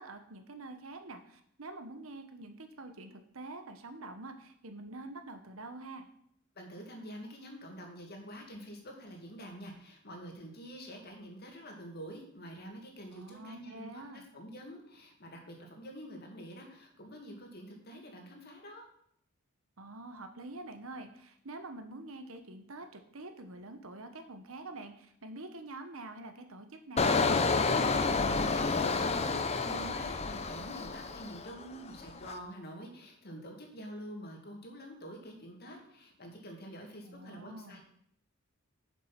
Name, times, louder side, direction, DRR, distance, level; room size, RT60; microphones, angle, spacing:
voice 1, 0.0-6.1 13.1-14.2 19.8-27.4 37.1-37.8, right 2 dB, 70° right, 7 dB, 1.2 m, -46 dB
voice 2, 6.6-18.8 28.1-37.8, equal, 50° left, 2 dB, 2.2 m, -46 dB
Engine, 27.0-31.6 32.0-32.3, left 4 dB, 30° left, 0.7 m, -29 dB
7.5 x 7.2 x 5.9 m, 0.68 s
head